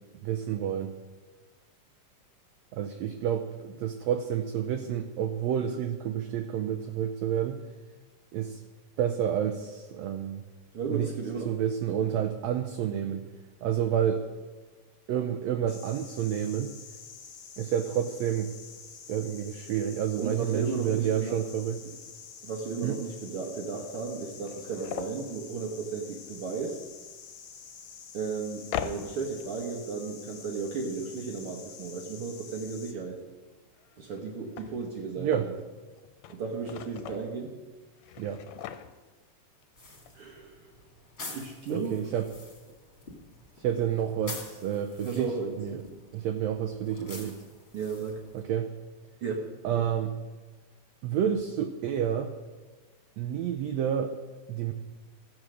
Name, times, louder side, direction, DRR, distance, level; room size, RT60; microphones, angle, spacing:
voice 1, 0.2-0.9 2.7-7.6 8.3-8.6 9.0-10.4 10.9-11.1 11.4-13.3 13.6-14.2 15.1-16.7 17.6-18.5 19.1-21.8 22.8-23.0 35.2-35.5 38.2-38.4 41.7-42.3 43.6-45.8 46.1-47.4 48.3-48.7 49.6-50.1 51.0-52.3 53.2-54.2 54.5-54.7, right 9 dB, 75° right, 6 dB, 1.8 m, -29 dB
voice 2, 10.7-11.5 20.2-21.4 22.4-26.8 28.1-33.2 34.0-35.5 36.3-37.5 40.1-40.6 41.3-42.1 45.0-45.6 47.7-48.2 49.2-49.8, right 4 dB, 60° right, -1 dB, 1.8 m, -34 dB
sound 1, 15.7-32.9, left 6 dB, 60° left, 1.7 m, -48 dB
sound 2, 21.3-21.4 21.9-22.0 23.1-23.2 23.4-23.5 24.1-25.2 27.3-27.4 28.6-29.8 33.7-35.6 36.0-37.3 37.9-39.3 39.6-39.7 39.9-40.1, left 10 dB, 75° left, 1.8 m, -40 dB
sound 3, 39.8-48.4, left 2 dB, 25° left, 1.9 m, -47 dB
14.0 x 7.9 x 6.3 m, 1.3 s
omnidirectional pair, 3.4 m